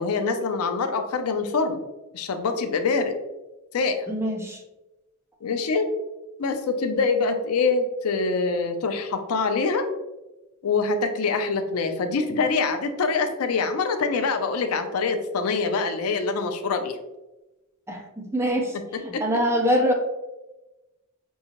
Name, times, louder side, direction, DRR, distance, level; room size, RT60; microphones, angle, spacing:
voice 1, 0.0-1.8 2.1-3.2 3.7-4.1 5.4-5.9 6.4-9.9 10.6-17.0 19.1-19.2, left 4 dB, 80° left, 7 dB, 0.5 m, -25 dB
voice 2, 4.1-4.6 17.9-18.8 19.0-19.9, equal, 10° right, 1 dB, 0.6 m, -24 dB
5.4 x 2.7 x 2.9 m, 1.0 s
head